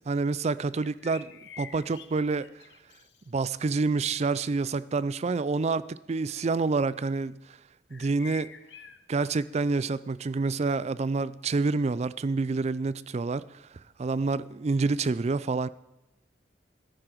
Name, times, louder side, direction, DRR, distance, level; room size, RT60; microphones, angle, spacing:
voice 1, 0.1-1.3 1.6-2.5 3.3-7.4 7.9-8.5 9.1-13.4 14.0-15.7, right 3 dB, 35° right, 0.4 m, -28 dB
sound 1, 0.8-3.3 7.9-9.0, left 7 dB, 70° left, 0.9 m, -47 dB
13.5 x 9.9 x 4.6 m
head